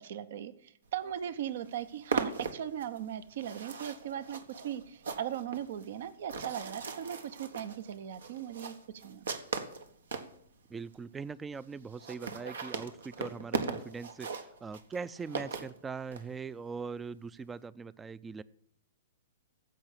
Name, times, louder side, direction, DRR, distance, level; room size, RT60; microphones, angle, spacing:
voice 1, 0.0-9.4, right 10 dB, 60° right, 14 dB, 0.9 m, -39 dB
sound 1, 1.1-1.2 1.5-10.3 10.9-11.0 11.2-11.3 11.5-11.6 11.9-16.2, right 4 dB, 80° right, 1.4 m, -38 dB
voice 2, 10.7-18.4, right 5 dB, 15° right, 20 dB, 0.4 m, -41 dB
15.0 x 5.6 x 8.3 m, 0.69 s
hypercardioid pair, 125°, 0 cm